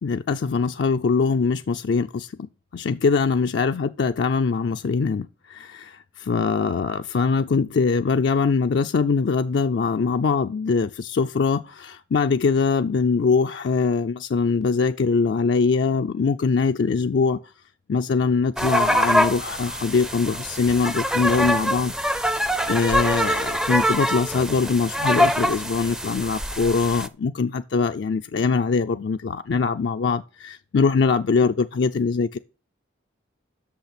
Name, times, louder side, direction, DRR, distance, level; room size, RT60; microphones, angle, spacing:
voice 1, 0.0-2.3 2.7-17.4 17.9-21.9 22.7-32.4, left 5 dB, 60° left, 0.4 m, -22 dB
sound 1, 18.6-27.1, equal, 5° right, 0.4 m, -24 dB
8.1 x 6.6 x 5.9 m
head